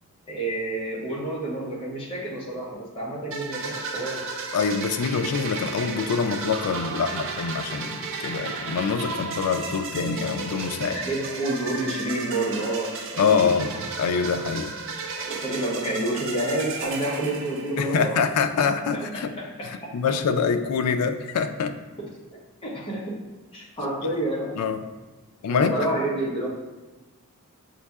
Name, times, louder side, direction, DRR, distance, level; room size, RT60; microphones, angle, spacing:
voice 1, 0.3-4.2 10.9-13.8 15.3-18.2 18.8-19.9 22.6-23.2 23.5-24.6 25.5-26.5, right 1 dB, 25° left, -4 dB, 0.8 m, -29 dB
sound 1, 3.3-18.1, right 4 dB, 60° right, 0.4 m, -34 dB
voice 2, 4.5-11.0 13.2-14.7 17.8-19.3 19.6-21.7 24.6-24.8 25.4-25.8, left 5 dB, 85° left, 9 dB, 0.3 m, -25 dB
6.6 x 2.7 x 2.3 m, 1.2 s
head